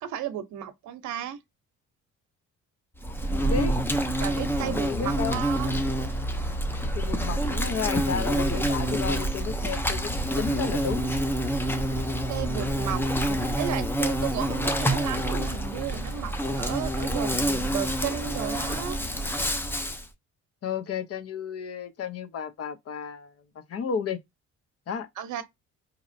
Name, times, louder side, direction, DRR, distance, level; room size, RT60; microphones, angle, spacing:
voice 1, 0.0-1.4 4.2-5.8 12.3-13.0 13.6-19.0 25.2-25.4, right 10 dB, 70° right, 0.7 m, -34 dB
Insect, 3.0-20.0, right 1 dB, 5° left, 0.5 m, -27 dB
voice 2, 3.3-3.8 4.6-5.4 6.9-10.1 10.4-11.0 13.3-13.4 20.6-23.3 23.7-24.2 24.9-25.1, left 6 dB, 55° left, 0.8 m, -32 dB
4.1 x 2.8 x 2.6 m
cardioid pair, 90°, 30 cm